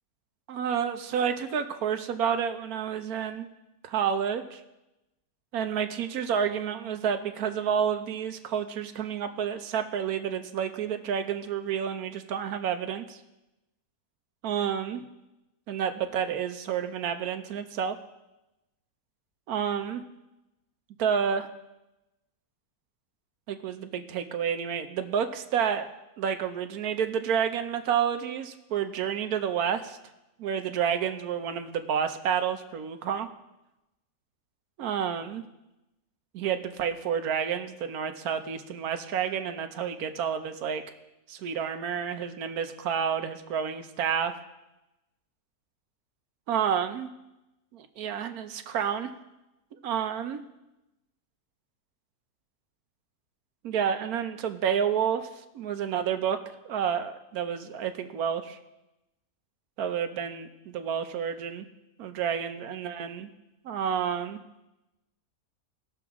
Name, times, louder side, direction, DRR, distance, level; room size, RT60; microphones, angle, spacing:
voice 1, 0.5-3.5 3.8-4.6 5.5-13.2 14.4-15.0 15.7-18.0 19.5-20.0 21.0-21.5 23.5-25.9 26.2-30.0 30.4-33.3 34.8-35.4 36.3-40.8 41.3-44.3 46.5-47.1 47.7-49.1 49.8-50.4 53.6-55.3 55.5-56.4 56.6-58.6 59.8-61.6 62.0-63.3 63.6-64.4, right 8 dB, 75° right, 8 dB, 1.2 m, -29 dB
18.5 x 6.8 x 3.6 m, 0.95 s
omnidirectional pair, 1.6 m